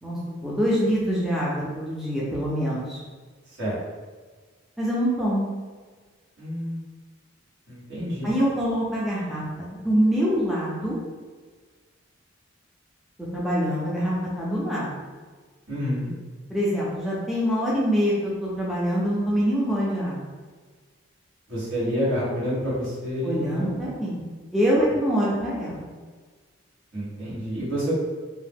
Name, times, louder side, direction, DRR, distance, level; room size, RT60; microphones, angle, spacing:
voice 1, 0.0-3.0 4.8-5.5 8.2-9.4 9.8-11.0 13.3-14.9 16.5-20.2 23.2-25.9, equal, ahead, -7 dB, 0.4 m, -25 dB
voice 2, 3.5-3.8 6.4-6.8 7.7-8.3 15.7-16.1 21.5-23.8 26.9-27.9, equal, 65° right, -9 dB, 1.3 m, -28 dB
2.7 x 2.0 x 3.4 m, 1.5 s
head